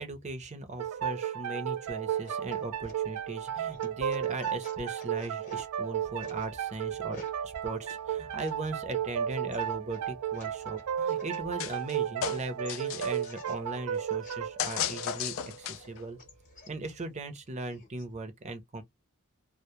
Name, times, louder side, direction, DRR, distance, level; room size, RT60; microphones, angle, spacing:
voice 1, 0.0-16.2 16.7-18.8, right 2 dB, 30° right, 0.6 m, -38 dB
sound 1, 0.8-16.1, right 9 dB, 90° right, 0.3 m, -34 dB
sound 2, 2.1-12.3 12.6-14.8 15.2-18.1, left 3 dB, 35° left, 0.8 m, -54 dB
sound 3, 11.6-11.9 12.2-13.3 14.6-16.0, left 9 dB, 60° left, 0.3 m, -34 dB
2.1 x 2.1 x 2.8 m
head